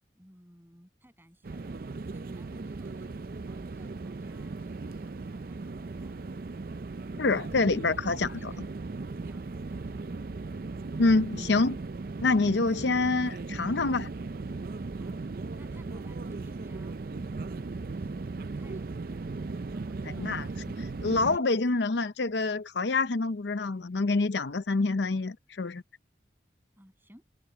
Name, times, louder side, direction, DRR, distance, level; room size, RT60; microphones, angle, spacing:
voice 1, 0.0-6.3 7.0-8.7 9.2-10.3 12.7-13.0 14.9-15.2 15.6-18.2 18.6-19.4 19.6-21.9 26.8-27.2, equal, 10° right, 7.4 m, -57 dB
sound 1, 1.4-21.4, right 3 dB, 50° right, 0.5 m, -37 dB
voice 2, 7.2-8.5 11.0-11.8 12.2-14.1 20.2-20.5 21.0-25.8, left 3 dB, 75° left, 0.7 m, -26 dB
head